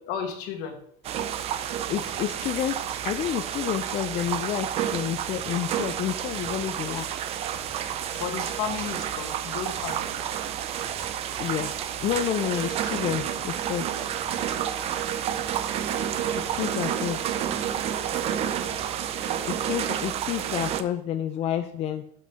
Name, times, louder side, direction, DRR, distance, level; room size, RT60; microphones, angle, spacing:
voice 1, 0.1-0.8 8.1-10.6, left 7 dB, 70° left, 4 dB, 1.5 m, -34 dB
sound 1, 1.0-20.8, right 10 dB, 40° right, 0.5 m, -30 dB
voice 2, 1.9-7.1 11.4-11.7 12.0-14.1 16.4-17.2 19.5-22.1, left 11 dB, 40° left, 8 dB, 0.4 m, -30 dB
sound 2, 2.0-4.9 5.3-6.0 6.4-9.4 9.8-10.5 10.8-13.8 14.2-14.9 15.3-18.3 18.6-19.4 19.7-20.0, equal, 5° left, 2.5 m, -52 dB
5.5 x 5.2 x 5.8 m, 0.65 s
cardioid pair, 170°, 17 cm